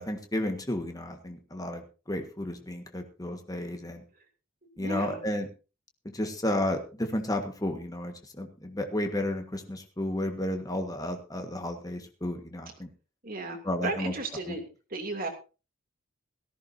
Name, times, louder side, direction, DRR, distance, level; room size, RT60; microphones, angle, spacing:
voice 1, 0.0-1.8 2.1-4.0 4.8-5.4 6.1-12.9 13.6-14.1, left 1 dB, 20° left, 5 dB, 1.6 m, -32 dB
voice 2, 4.7-5.2 13.2-15.3, right 2 dB, 45° right, 3 dB, 2.8 m, -35 dB
17.5 x 14.0 x 2.8 m, 0.32 s
head